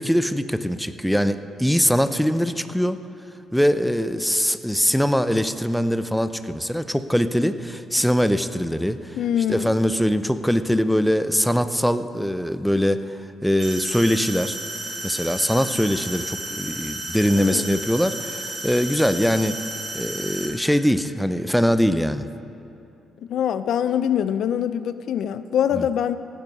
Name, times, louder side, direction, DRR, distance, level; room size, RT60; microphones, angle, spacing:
voice 1, 0.0-3.0 3.5-9.2 9.5-13.2 13.4-14.6 15.0-19.6 19.9-22.3 25.7-25.8, equal, ahead, 11 dB, 0.5 m, -22 dB
voice 2, 9.2-9.7 17.3-17.8 23.2-26.2, left 9 dB, 70° left, 13 dB, 0.4 m, -24 dB
sound 1, 13.6-20.5, right 2 dB, 60° right, 3.5 m, -32 dB
16.5 x 9.3 x 5.4 m, 2.8 s
cardioid pair, 90°, 0 cm